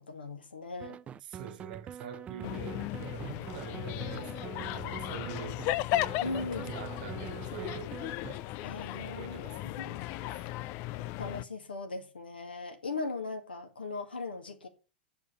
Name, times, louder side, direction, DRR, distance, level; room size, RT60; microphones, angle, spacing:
voice 1, 0.1-1.0 6.2-6.7 8.6-9.4 9.8-10.0 11.2-14.7, left 3 dB, 80° left, 1.9 m, -38 dB
sound 1, 0.8-8.4, right 9 dB, 25° right, 0.4 m, -45 dB
voice 2, 1.2-5.6 6.2-8.0 8.9-9.7 10.1-10.5, right 9 dB, 60° right, 1.3 m, -45 dB
sound 2, 2.4-11.4, left 15 dB, 45° left, 0.5 m, -36 dB
7.9 x 7.1 x 6.6 m
figure-of-eight pair, 90°, 5 cm